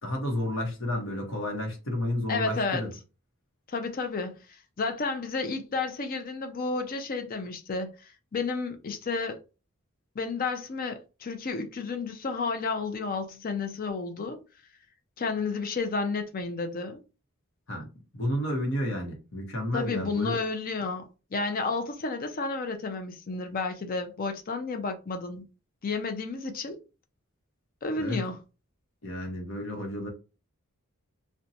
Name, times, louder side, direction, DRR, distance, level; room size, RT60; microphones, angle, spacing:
voice 1, 0.0-2.9 17.7-17.8 18.1-20.4 28.0-28.3 29.0-30.1, left 1 dB, 65° left, 0.9 m, -31 dB
voice 2, 2.3-2.9 3.7-9.4 10.1-14.4 15.2-17.0 19.7-25.5 25.8-26.8 27.8-28.4, left 4 dB, 45° left, 0.5 m, -31 dB
2.7 x 2.2 x 2.6 m
head